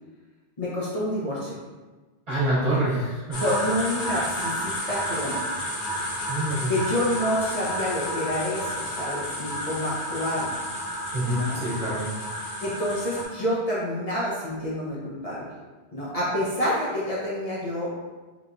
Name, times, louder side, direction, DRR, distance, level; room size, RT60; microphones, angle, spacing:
voice 1, 0.6-1.5 3.4-5.4 6.7-10.5 11.3-11.6 12.6-15.4 15.9-17.9, equal, 40° left, -8 dB, 0.7 m, -28 dB
voice 2, 2.3-3.4 6.3-6.7 11.1-12.1, right 1 dB, 40° right, -13 dB, 1.2 m, -26 dB
sound 1, 3.3-13.3, equal, 70° left, 1.2 m, -31 dB
3.3 x 3.0 x 2.5 m, 1.3 s
omnidirectional pair, 1.1 m